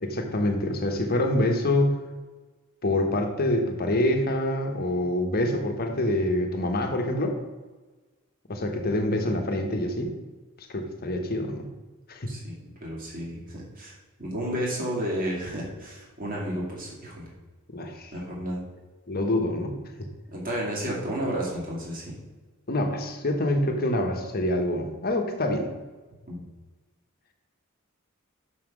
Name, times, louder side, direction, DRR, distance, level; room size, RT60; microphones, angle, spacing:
voice 1, 0.0-2.0 2.8-7.4 8.5-10.1 10.7-11.7 12.1-12.3 17.7-18.1 19.1-19.8 22.7-25.7, left 1 dB, 45° left, 4 dB, 1.1 m, -26 dB
voice 2, 12.3-17.3 18.1-18.6 20.3-22.1 26.3-26.4, equal, 40° right, -4 dB, 2.4 m, -32 dB
6.3 x 5.8 x 6.1 m, 1.3 s
head